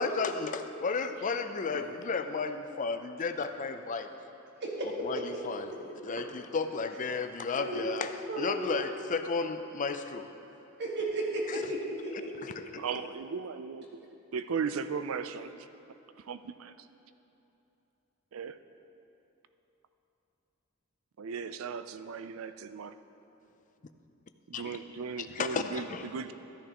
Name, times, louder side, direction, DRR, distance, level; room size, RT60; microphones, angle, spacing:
voice 1, 0.0-4.1 4.8-5.7 6.0-10.3 11.5-11.6 12.4-12.8 24.5-24.8 25.2-26.0, left 4 dB, 40° left, 8 dB, 0.5 m, -33 dB
voice 2, 4.6-5.1 7.6-7.9 8.3-8.7 10.8-12.1, right 2 dB, 55° right, -2 dB, 1.6 m, -34 dB
voice 3, 12.8-15.5 16.2-16.9 18.3-18.6 21.2-22.9 24.5-26.3, right 6 dB, 80° right, 11 dB, 0.4 m, -37 dB
14.0 x 10.0 x 3.0 m, 2.9 s
head